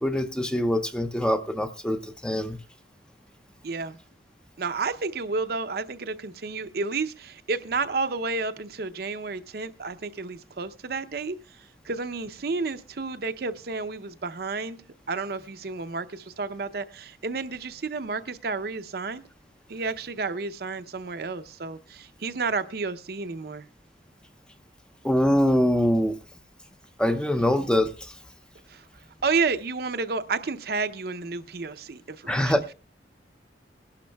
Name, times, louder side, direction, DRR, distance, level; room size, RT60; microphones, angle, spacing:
voice 1, 0.0-2.6 25.0-26.2 27.0-28.1 32.3-32.7, left 1 dB, 5° left, 0.5 m, -24 dB
voice 2, 3.6-4.0 4.6-11.4 11.8-14.8 15.1-19.2 19.7-23.7 28.7-28.8 29.2-32.7, right 4 dB, 55° right, 0.6 m, -31 dB
21.0 x 11.5 x 2.2 m
head